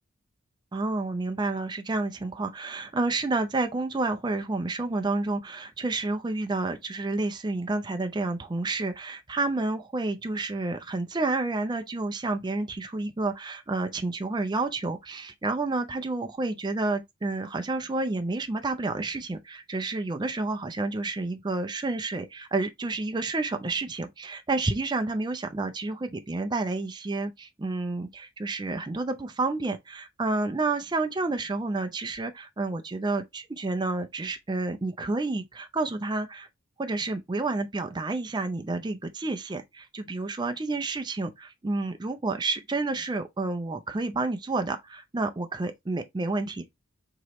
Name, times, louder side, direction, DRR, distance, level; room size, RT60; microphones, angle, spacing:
voice 1, 0.7-36.5 36.8-46.7, right 3 dB, 20° right, 0.4 m, -30 dB
4.6 x 2.9 x 3.0 m
head